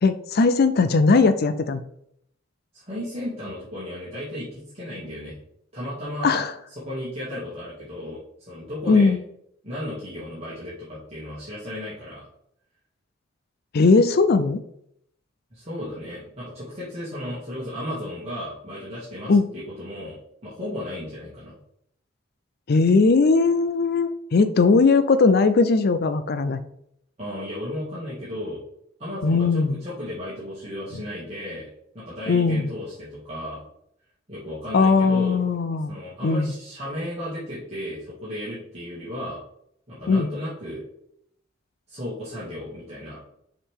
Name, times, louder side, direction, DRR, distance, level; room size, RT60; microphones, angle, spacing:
voice 1, 0.0-1.8 6.2-6.5 8.9-9.2 13.7-14.6 19.3-19.5 22.7-26.6 29.2-29.8 32.3-32.7 34.7-35.9 36.2-36.5 40.1-40.3, left 4 dB, 50° left, 10 dB, 0.5 m, -19 dB
voice 2, 2.7-5.4 5.7-6.4 6.8-8.2 8.5-9.1 9.6-12.2 15.5-20.2 20.4-21.5 27.2-28.6 29.0-31.7 31.9-33.6 34.3-35.4 35.9-39.4 39.9-40.8 41.9-43.2, left 1 dB, 35° right, -10 dB, 2.3 m, -34 dB
7.0 x 5.0 x 3.7 m, 0.73 s
head